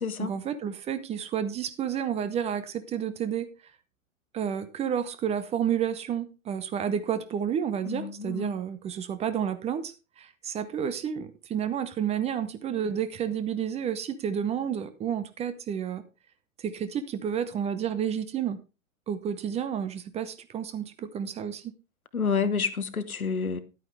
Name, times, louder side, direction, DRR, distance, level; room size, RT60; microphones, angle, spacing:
voice 1, 0.2-3.5 4.3-16.0 16.6-18.6 19.1-21.7, right 8 dB, 15° right, 0.6 m, -30 dB
voice 2, 7.9-8.6 22.1-23.6, left 5 dB, 90° left, 1.1 m, -29 dB
10.5 x 9.1 x 3.4 m
figure-of-eight pair, 105°, 42 cm